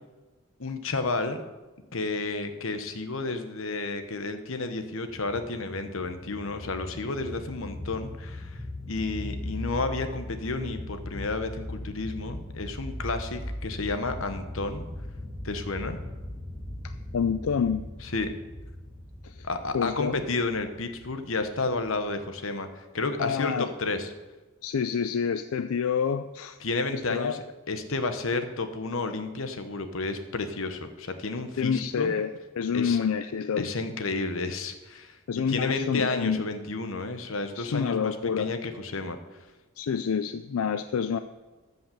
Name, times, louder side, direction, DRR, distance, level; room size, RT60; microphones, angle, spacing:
voice 1, 0.6-1.4 1.9-8.6 8.9-14.9 15.4-16.0 18.0-18.3 19.5-24.1 26.6-32.1 32.7-33.0 33.6-39.2, left 3 dB, 70° left, 8 dB, 1.0 m, -31 dB
sound 1, 5.1-22.1, left 1 dB, 5° left, 1.5 m, -39 dB
voice 2, 16.8-17.9 19.2-19.5 19.7-20.2 23.2-23.7 24.6-26.6 26.9-27.4 31.6-33.7 35.3-36.4 37.5-38.5 39.8-41.2, left 6 dB, 85° left, 11 dB, 0.4 m, -28 dB
13.5 x 5.5 x 6.9 m, 1.2 s
head